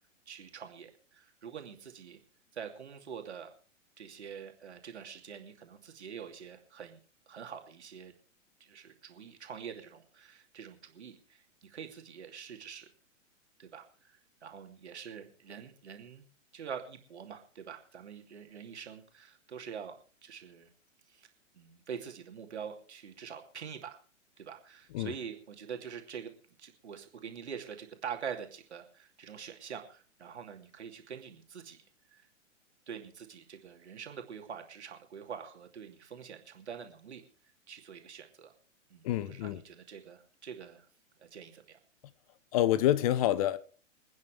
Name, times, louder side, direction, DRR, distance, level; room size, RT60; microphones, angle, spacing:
voice 1, 0.3-2.2 2.5-3.5 4.0-7.0 7.3-8.1 8.6-12.8 13.6-16.2 16.5-20.7 21.1-21.3 21.5-24.0 24.4-26.3 26.6-31.8 32.1-32.2 32.9-37.2 37.7-38.5 38.9-40.9 41.2-41.8, right 7 dB, 60° right, 2.7 m, -45 dB
voice 2, 39.0-39.6 42.5-43.6, left 13 dB, 30° left, 0.8 m, -27 dB
27.0 x 9.5 x 3.3 m
figure-of-eight pair, 115°, 38 cm